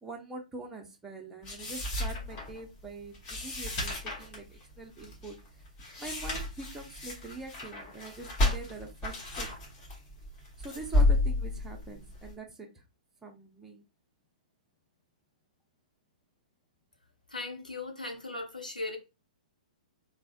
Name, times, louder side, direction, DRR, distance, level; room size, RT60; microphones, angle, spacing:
voice 1, 0.0-5.3 6.0-9.5 10.6-12.8 13.2-13.8, right 3 dB, 10° right, 0.5 m, -44 dB
sound 1, 1.4-12.3, left 2 dB, 30° left, 1.1 m, -32 dB
voice 2, 17.3-19.0, left 3 dB, 90° left, 0.7 m, -38 dB
3.4 x 2.1 x 2.3 m
figure-of-eight pair, 115°, 4 cm